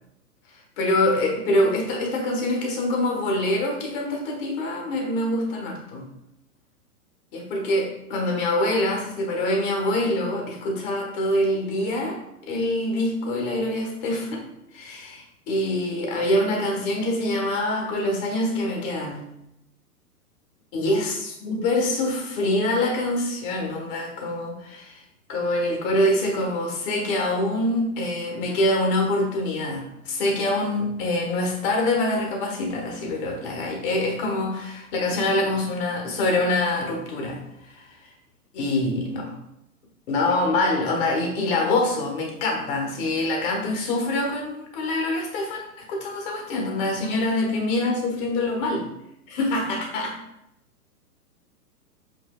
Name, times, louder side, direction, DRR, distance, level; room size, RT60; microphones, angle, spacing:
voice 1, 0.5-6.1 7.3-19.2 20.7-25.0 25.3-38.1 38.5-39.3 40.1-48.9 49.3-50.2, left 1 dB, 35° left, 1 dB, 1.4 m, -25 dB
7.7 x 2.7 x 2.3 m, 0.82 s
figure-of-eight pair, 115°, 47 cm